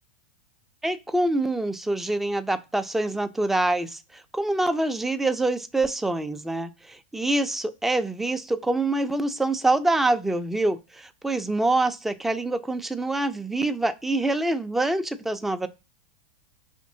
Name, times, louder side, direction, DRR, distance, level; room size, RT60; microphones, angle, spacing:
voice 1, 0.8-15.7, right 2 dB, 5° right, 0.4 m, -25 dB
5.0 x 2.9 x 2.7 m
hypercardioid pair, 110°, 6 cm